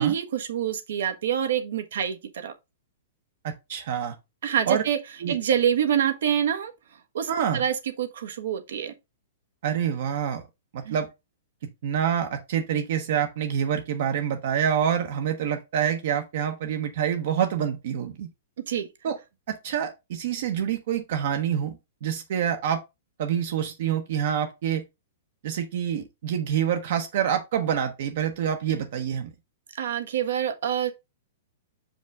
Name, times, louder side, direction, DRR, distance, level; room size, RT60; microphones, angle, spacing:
voice 1, 0.0-2.5 4.4-5.0 5.3-6.7 7.1-8.9 10.8-11.0 18.7-18.9 29.7-30.9, right 9 dB, 75° right, 1.3 m, -26 dB
voice 2, 3.4-4.1 4.7-4.8 5.2-5.3 7.3-7.6 9.6-10.4 10.7-11.1 11.8-18.3 19.0-19.2 19.5-21.8 22.0-22.8 23.2-24.8 25.4-29.3, right 8 dB, 60° right, 1.0 m, -26 dB
6.3 x 5.2 x 3.5 m
hypercardioid pair, 160°, 0 cm